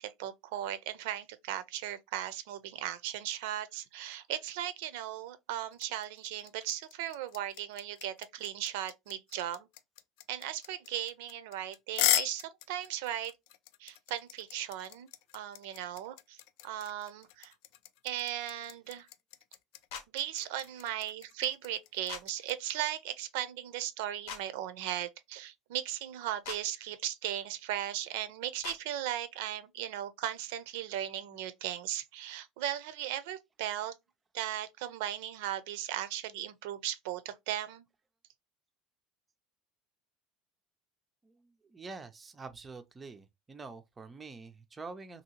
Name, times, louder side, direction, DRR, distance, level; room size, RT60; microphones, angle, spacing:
voice 1, 0.0-9.7 10.3-13.3 13.8-17.5 18.0-19.1 20.1-34.0 34.3-37.8, right 12 dB, 80° right, 0.5 m, -37 dB
sound 1, 5.7-22.5, left 15 dB, 65° left, 0.3 m, -36 dB
sound 2, 19.9-20.1 22.1-22.2 24.3-24.4 26.4-26.6 28.6-28.8, left 7 dB, 85° left, 0.9 m, -40 dB
voice 2, 41.2-45.2, right 4 dB, 15° right, 0.3 m, -46 dB
2.7 x 2.7 x 2.9 m
cardioid pair, 160°, 0 cm